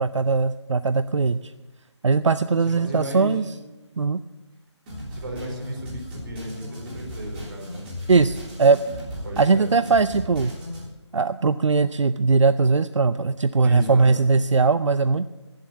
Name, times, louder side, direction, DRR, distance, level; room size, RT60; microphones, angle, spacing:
voice 1, 0.0-1.5 2.0-3.4 4.0-4.2 8.1-8.8 9.4-10.5 11.1-15.3, right 4 dB, 80° right, 13 dB, 0.5 m, -20 dB
voice 2, 2.8-3.4 5.1-7.8 9.2-9.7 13.6-14.1, equal, 45° right, 0 dB, 4.5 m, -34 dB
sound 1, 4.9-10.9, equal, 20° right, 3.7 m, -36 dB
17.5 x 7.7 x 7.1 m, 1.1 s
figure-of-eight pair, 155°, 15 cm